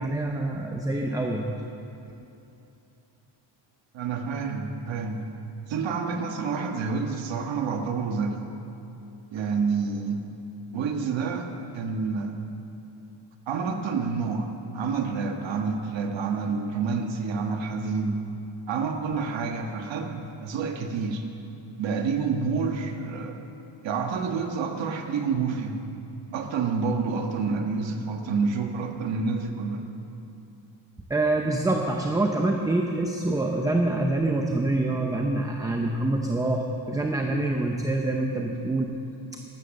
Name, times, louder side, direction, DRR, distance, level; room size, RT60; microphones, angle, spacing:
voice 1, 0.0-1.5 31.1-38.9, right 2 dB, 5° right, 2 dB, 0.6 m, -26 dB
voice 2, 3.9-5.2 5.7-8.4 9.3-10.2 10.7-11.5 11.7-12.3 13.5-18.2 18.7-21.2 21.8-23.4 23.8-25.8 26.3-29.8, right 5 dB, 65° right, 4 dB, 1.5 m, -28 dB
14.5 x 12.0 x 6.5 m, 2.9 s
cardioid pair, 170°, 48 cm